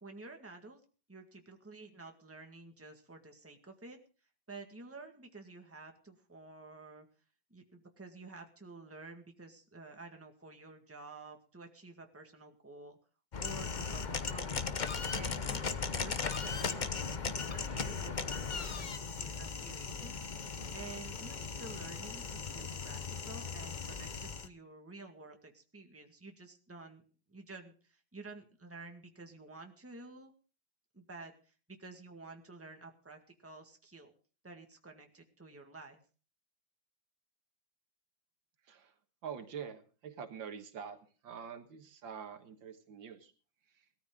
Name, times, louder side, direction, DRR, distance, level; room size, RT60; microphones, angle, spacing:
voice 1, 0.0-0.8 1.1-4.0 4.5-7.1 7.5-13.0 13.4-14.7 15.1-27.0 27.3-30.3 30.9-34.1 34.4-36.0, right 3 dB, 5° right, 4 dB, 1.7 m, -51 dB
sound 1, 13.3-24.5, left 5 dB, 45° left, 0.5 m, -37 dB
voice 2, 39.2-43.3 43.7-43.9, right 7 dB, 80° right, 7 dB, 2.2 m, -46 dB
18.5 x 13.5 x 3.8 m, 0.38 s
omnidirectional pair, 2.1 m